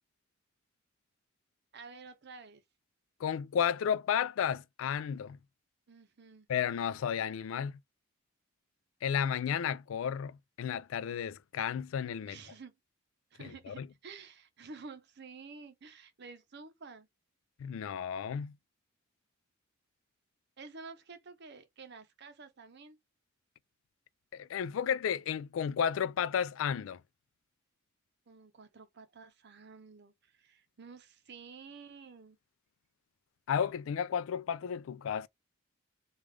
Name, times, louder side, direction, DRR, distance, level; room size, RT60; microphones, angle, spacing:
voice 1, 1.7-2.6 5.9-6.5 12.2-12.7 13.3-17.1 20.6-23.0 28.3-32.4, right 4 dB, 55° right, 0.7 m, -51 dB
voice 2, 3.2-5.4 6.5-7.8 9.0-12.4 13.4-13.9 17.6-18.5 24.3-27.0 33.5-35.3, left 8 dB, 70° left, 0.3 m, -33 dB
3.3 x 2.4 x 3.1 m
head